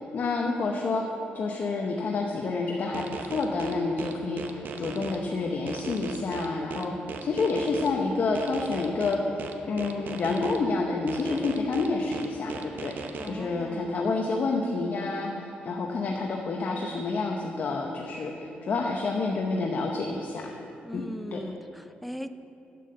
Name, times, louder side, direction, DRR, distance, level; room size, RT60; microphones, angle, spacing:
voice 1, 0.1-1.0 1.3-6.9 7.2-20.5 20.9-21.0 21.3-21.4, left 3 dB, 55° left, 1 dB, 0.9 m, -29 dB
sound 1, 2.9-5.2 5.7-7.9 8.3-10.6 11.1-13.3, right 5 dB, 65° right, 0.7 m, -37 dB
voice 2, 13.2-14.0 20.8-22.3, equal, ahead, 9 dB, 0.5 m, -39 dB
8.6 x 7.5 x 6.6 m, 2.7 s
cardioid pair, 95°, 4 cm